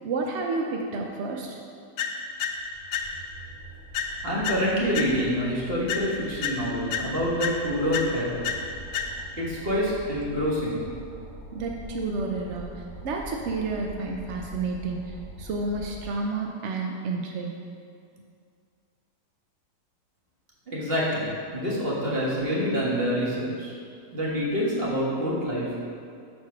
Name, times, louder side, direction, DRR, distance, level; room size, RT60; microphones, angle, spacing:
voice 1, 0.0-1.6 11.5-17.6, right 3 dB, 75° right, 1 dB, 0.6 m, -30 dB
sound 1, 2.0-3.5 3.9-5.5 5.9-9.5, left 6 dB, 70° left, 0.7 m, -32 dB
sound 2, 2.3-16.1, right 1 dB, 15° left, 1.1 m, -44 dB
voice 2, 4.2-8.4 9.4-10.8 20.7-23.7 24.1-25.8, equal, 35° right, -6 dB, 1.6 m, -27 dB
6.3 x 4.4 x 5.7 m, 2.3 s
omnidirectional pair, 1.8 m